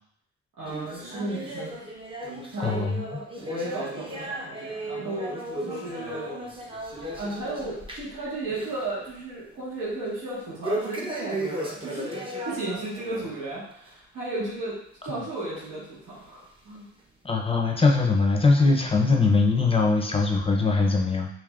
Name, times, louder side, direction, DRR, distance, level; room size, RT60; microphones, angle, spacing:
voice 1, 0.6-1.9 2.5-2.9 3.4-5.4 5.6-6.3 7.2-12.1 12.4-14.7 15.0-16.9, right 2 dB, 75° right, -9 dB, 1.6 m, -34 dB
sound 1, 0.7-8.2 8.5-8.9 9.2-9.3 10.6-13.3 13.7-13.9 14.6-14.7 15.6-15.7 16.4-16.5, right 1 dB, 15° right, 0.7 m, -35 dB
voice 2, 2.6-3.1 17.2-21.3, left 3 dB, 20° left, 1 dB, 0.6 m, -21 dB
4.8 x 2.9 x 2.4 m, 0.68 s
cardioid pair, 90°, 30 cm